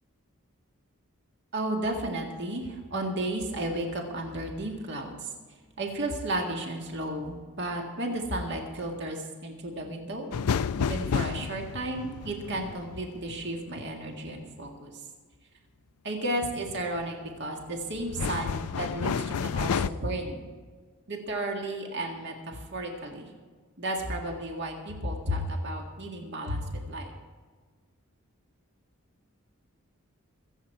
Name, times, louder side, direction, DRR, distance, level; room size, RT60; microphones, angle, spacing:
voice 1, 1.5-5.3 5.8-10.3 10.8-15.0 16.0-20.4 21.1-23.3 23.8-27.1, right 1 dB, 55° right, 1 dB, 1.9 m, -33 dB
sound 1, 10.3-14.2 16.7-17.1 17.6-19.9, left 6 dB, 85° left, 0.4 m, -31 dB
24.0 x 8.0 x 4.6 m, 1.5 s
head